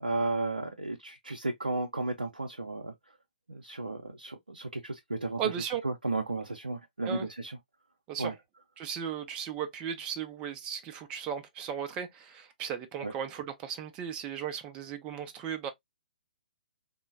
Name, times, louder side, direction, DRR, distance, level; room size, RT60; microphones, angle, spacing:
voice 1, 0.0-2.9 3.5-5.4 5.8-7.5 8.2-8.3 13.0-13.1, right 2 dB, 80° right, 0.5 m, -33 dB
voice 2, 5.4-5.8 7.0-7.3 8.1-8.3 8.8-15.7, right 8 dB, 20° right, 0.4 m, -36 dB
3.7 x 2.1 x 2.5 m
figure-of-eight pair, 125°, 5 cm